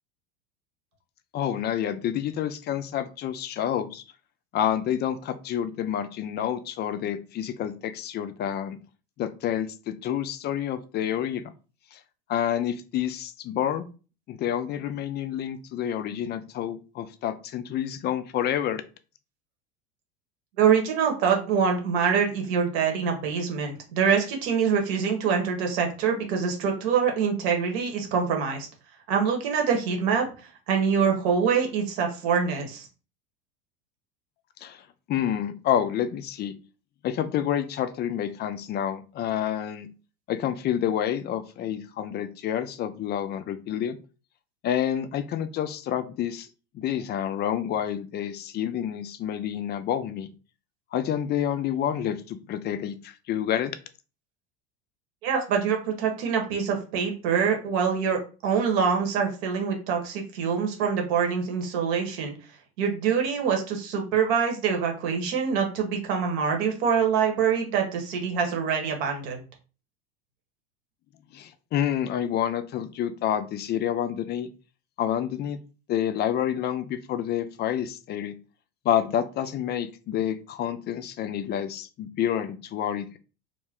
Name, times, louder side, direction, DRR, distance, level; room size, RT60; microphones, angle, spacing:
voice 1, 1.3-4.0 4.5-8.8 9.2-11.4 11.9-12.0 12.3-13.9 14.3-18.8 34.6-34.8 35.1-36.5 37.0-39.9 40.3-44.0 44.6-46.5 46.7-50.3 50.9-53.7 71.3-74.5 75.0-75.6 75.9-78.3 78.8-83.2, left 10 dB, 30° left, 11 dB, 0.4 m, -28 dB
voice 2, 20.6-28.7 29.1-30.2 30.7-32.9 55.2-62.3 62.8-69.4, right 6 dB, 65° right, 2 dB, 1.1 m, -25 dB
2.5 x 2.1 x 3.5 m, 0.35 s
hypercardioid pair, 90°, 33 cm